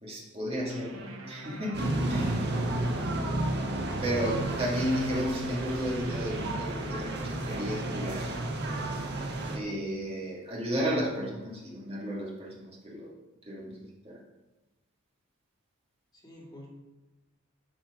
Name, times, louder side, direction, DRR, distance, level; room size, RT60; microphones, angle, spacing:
voice 1, 0.0-2.5 4.0-8.3 9.5-13.1 13.5-13.8 14.0-14.2, equal, 30° right, -4 dB, 2.5 m, -33 dB
sound 1, 0.7-10.0, right 1 dB, 75° right, 1.3 m, -46 dB
sound 2, 1.7-9.6, right 1 dB, 55° right, 1.6 m, -32 dB
voice 2, 2.3-3.2 16.1-16.7, left 1 dB, 20° left, -3 dB, 2.5 m, -47 dB
12.0 x 6.1 x 5.1 m, 1.1 s
head